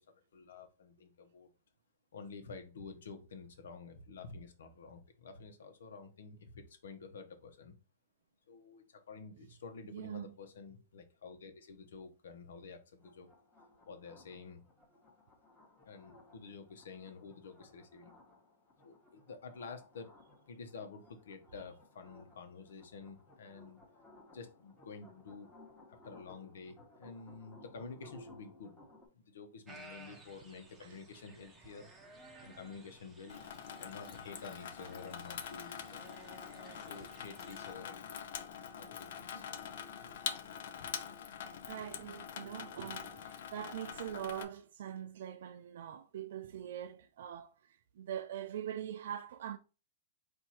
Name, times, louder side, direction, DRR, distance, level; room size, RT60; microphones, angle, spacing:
voice 1, 0.0-1.5 2.1-7.7 8.5-13.3 13.9-14.6 15.8-18.1 18.8-20.1 20.5-23.8 24.3-25.5 25.9-28.7 29.1-31.9 32.4-33.4 33.8-35.8 36.8-38.3 38.7-39.4, left 4 dB, 85° left, 1.0 m, -50 dB
voice 2, 9.9-10.3 30.8-31.0 41.7-49.6, right 10 dB, 65° right, 0.4 m, -43 dB
sound 1, 13.0-29.1, left 2 dB, 10° left, 1.2 m, -60 dB
sound 2, 29.7-37.7, right 2 dB, 10° right, 0.8 m, -57 dB
Water tap faucet / Sink (filling or washing), 33.3-44.4, left 8 dB, 60° left, 0.6 m, -45 dB
4.5 x 2.6 x 4.3 m
hypercardioid pair, 160°, 0 cm